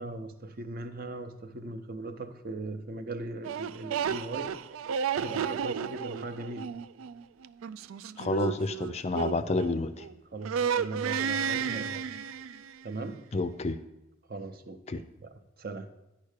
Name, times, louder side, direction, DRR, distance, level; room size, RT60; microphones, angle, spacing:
voice 1, 0.0-4.9 5.2-6.8 10.3-12.1 12.8-13.3 14.3-15.9, right 2 dB, 45° right, 0.7 m, -39 dB
sound 1, 3.4-10.1 10.4-12.8, right 7 dB, 85° right, 0.4 m, -33 dB
voice 2, 8.2-10.1 13.3-13.8 14.9-15.0, left 3 dB, 30° left, 0.4 m, -29 dB
10.0 x 5.5 x 6.5 m
head